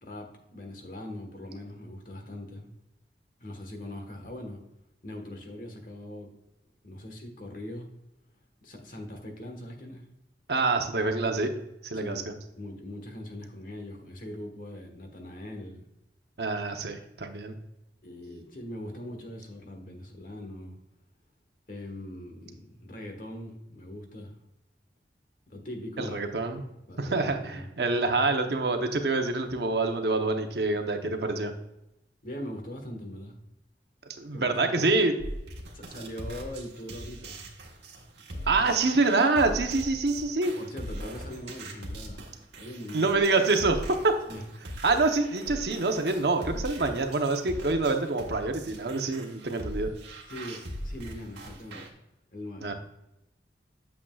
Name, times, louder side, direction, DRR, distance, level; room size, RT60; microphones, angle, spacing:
voice 1, 0.0-2.7 3.4-4.6 5.0-6.3 6.8-7.9 8.6-10.1 11.9-12.3 12.6-15.9 18.0-20.8 21.7-24.4 25.5-26.2 26.5-27.7 31.0-31.2 32.2-33.4 34.3-34.9 35.7-37.4 38.3-38.7 40.6-42.3 42.6-43.1 44.3-44.4 50.3-51.9 52.3-52.7, left 1 dB, 50° left, 3 dB, 1.4 m, -41 dB
voice 2, 10.5-11.5 11.8-12.2 16.4-17.5 26.0-26.6 27.0-31.5 34.2-35.1 38.5-40.5 42.9-44.1 44.8-49.9 52.6-52.7, right 3 dB, 70° right, 5 dB, 0.9 m, -26 dB
sound 1, 35.2-51.9, right 1 dB, 85° right, 1.3 m, -40 dB
8.6 x 7.2 x 2.4 m, 0.87 s
head